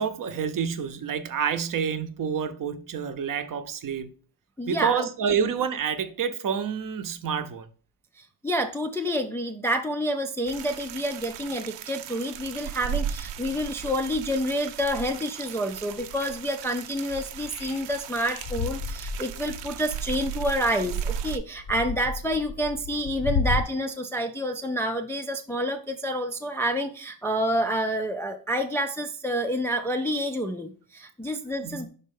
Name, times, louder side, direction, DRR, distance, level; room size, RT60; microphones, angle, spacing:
voice 1, 0.0-4.1 4.7-7.7 31.6-31.9, right 7 dB, 50° right, 0.7 m, -28 dB
voice 2, 4.6-5.1 8.4-31.9, equal, 5° left, 0.3 m, -28 dB
sound 1, 10.5-21.4, right 9 dB, 85° right, 0.7 m, -36 dB
sound 2, 17.1-23.6, left 5 dB, 60° left, 0.8 m, -33 dB
5.5 x 4.2 x 5.2 m
cardioid pair, 135°, 43 cm